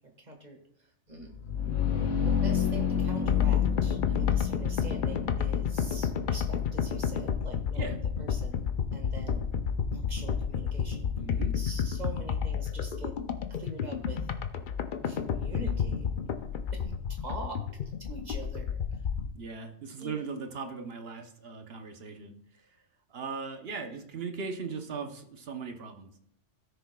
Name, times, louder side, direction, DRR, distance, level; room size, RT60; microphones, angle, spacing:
voice 1, 0.2-1.3 2.2-8.7 8.9-9.5 9.9-11.1 11.5-13.1 13.5-14.3 15.0-16.1 16.7-16.8 17.2-17.6 18.1-19.0 20.0-20.3, right 3 dB, 35° right, 2 dB, 1.7 m, -44 dB
sound 1, 1.2-12.9, left 8 dB, 85° left, 1.2 m, -31 dB
sound 2, 3.3-19.3, left 7 dB, 55° left, 0.6 m, -31 dB
voice 2, 11.1-11.6 19.3-22.8 23.1-26.2, right 5 dB, 55° right, 5 dB, 1.1 m, -39 dB
17.0 x 6.8 x 2.3 m, 0.68 s
omnidirectional pair, 1.3 m